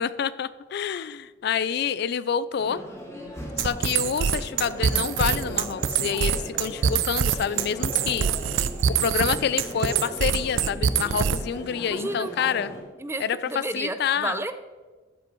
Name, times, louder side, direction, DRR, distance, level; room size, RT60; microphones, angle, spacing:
voice 1, 0.0-2.8 3.6-8.3 8.9-12.7 13.2-14.4, left 7 dB, 60° left, 17 dB, 0.3 m, -27 dB
sound 1, 2.6-12.8, equal, 15° left, 2.0 m, -38 dB
sound 2, 3.6-11.6, right 7 dB, 85° right, 0.4 m, -24 dB
voice 2, 11.9-12.3 13.0-14.5, right 2 dB, 15° right, 11 dB, 0.4 m, -31 dB
13.0 x 5.3 x 4.4 m, 1.3 s
head